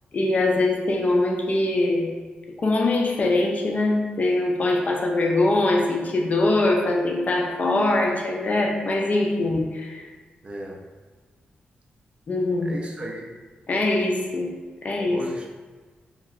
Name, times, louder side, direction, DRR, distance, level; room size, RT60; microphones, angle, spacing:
voice 1, 0.1-2.1 2.6-10.0 12.3-12.8 13.7-14.5 14.8-15.2, left 2 dB, 45° left, 1 dB, 0.4 m, -22 dB
voice 2, 10.4-10.8 12.6-13.3 15.1-15.5, right 1 dB, 35° right, 0 dB, 0.5 m, -35 dB
2.9 x 2.8 x 2.5 m, 1.4 s
cardioid pair, 90°, 3 cm